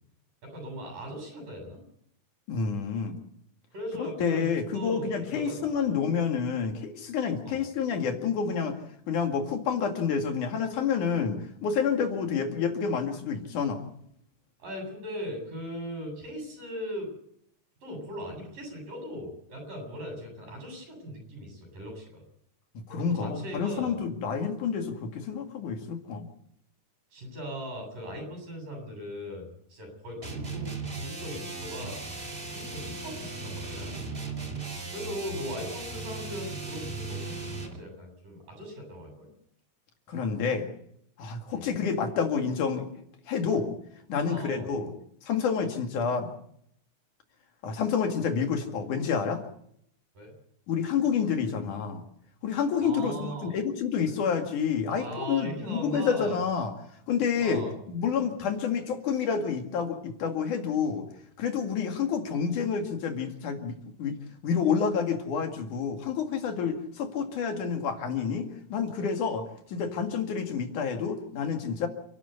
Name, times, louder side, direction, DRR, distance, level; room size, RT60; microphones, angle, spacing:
voice 1, 0.4-1.8 3.7-5.7 7.4-7.6 14.6-17.1 17.8-22.2 22.9-24.0 27.1-32.0 32.5-34.0 34.9-39.3 41.5-41.7 44.3-44.7 50.1-50.3 52.8-53.5 54.9-56.4 57.4-57.7, equal, 85° right, 3 dB, 9.5 m, -39 dB
voice 2, 2.5-3.2 4.0-8.8 9.1-13.9 22.8-26.3 40.1-40.7 41.2-42.9 43.3-43.7 44.1-44.9 45.2-46.3 47.6-49.4 50.7-52.0 52.4-56.7 57.1-61.1 61.4-64.2 64.4-71.9, left 6 dB, 70° left, 5 dB, 3.6 m, -29 dB
sound 1, 30.2-37.8, right 3 dB, 20° right, 2.4 m, -37 dB
29.0 x 12.0 x 8.3 m, 0.71 s
omnidirectional pair, 3.7 m